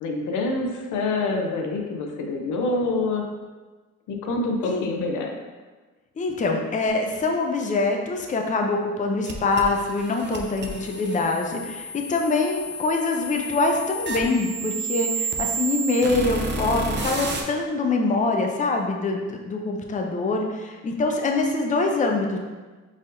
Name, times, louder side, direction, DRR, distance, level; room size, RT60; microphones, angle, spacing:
voice 1, 0.0-3.2 4.1-5.3, left 2 dB, 85° left, 1 dB, 0.6 m, -26 dB
voice 2, 6.2-22.4, left 3 dB, 25° left, 2 dB, 0.5 m, -24 dB
sound 1, 9.2-17.4, right 2 dB, 35° right, 0.6 m, -31 dB
4.2 x 3.5 x 2.6 m, 1.3 s
cardioid pair, 90°, 30 cm